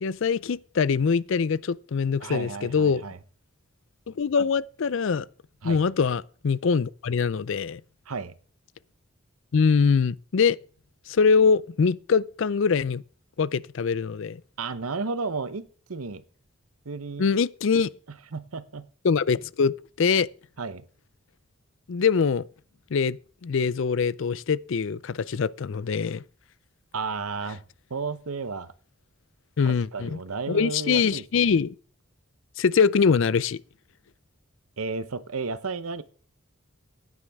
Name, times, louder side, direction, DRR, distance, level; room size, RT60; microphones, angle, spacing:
voice 1, 0.0-3.0 4.1-5.3 5.6-7.8 9.5-10.6 11.1-13.0 13.4-14.4 17.2-17.9 19.0-19.7 20.0-20.3 21.9-22.5 22.9-26.2 29.6-30.2 30.5-31.7 32.6-33.6, left 5 dB, 60° left, 0.4 m, -23 dB
voice 2, 2.2-3.2 5.6-5.8 8.1-8.3 14.6-16.2 16.8-17.3 18.1-18.9 20.6-20.8 26.9-27.6 27.9-28.7 29.9-31.2 34.8-36.0, right 4 dB, 85° right, 0.9 m, -33 dB
15.0 x 9.8 x 3.5 m
head